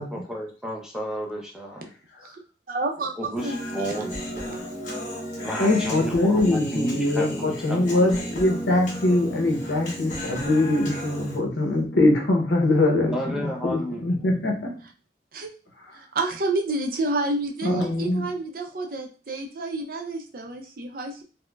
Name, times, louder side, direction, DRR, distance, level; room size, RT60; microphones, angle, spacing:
voice 1, 0.0-1.8 3.2-4.1 4.4-4.6 5.4-8.3 13.1-14.2, equal, 5° right, -1 dB, 0.6 m, -32 dB
voice 2, 2.7-3.6 15.3-15.5 15.9-21.2, right 2 dB, 50° right, 3 dB, 0.5 m, -29 dB
Human voice, 3.4-11.4, equal, 45° left, 1.0 m, -34 dB
voice 3, 5.6-14.7 17.6-18.3, left 2 dB, 80° left, 2 dB, 0.8 m, -23 dB
4.3 x 2.1 x 2.3 m, 0.36 s
head